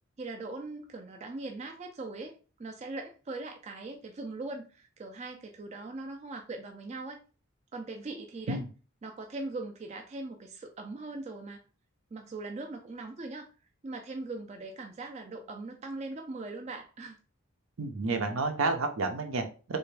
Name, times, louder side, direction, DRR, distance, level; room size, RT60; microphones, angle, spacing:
voice 1, 0.2-2.3 2.6-7.2 7.7-8.6 9.0-11.6 12.1-13.5 13.8-17.2, right 2 dB, 30° right, 3 dB, 0.3 m, -40 dB
voice 2, 17.8-19.8, right 3 dB, 70° right, 5 dB, 0.6 m, -30 dB
3.3 x 2.5 x 3.2 m, 0.36 s
head